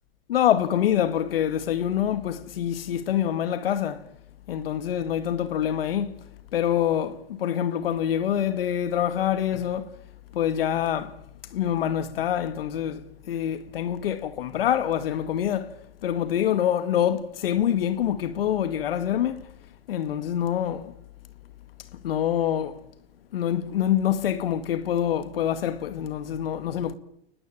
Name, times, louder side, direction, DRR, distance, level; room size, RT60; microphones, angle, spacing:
voice 1, 0.3-4.1 4.5-10.0 10.3-11.1 11.5-19.5 19.9-20.9 21.9-22.8 23.3-26.9, left 10 dB, 75° left, 2.2 m, -26 dB
30.0 x 20.0 x 9.1 m
hypercardioid pair, 110°, 29 cm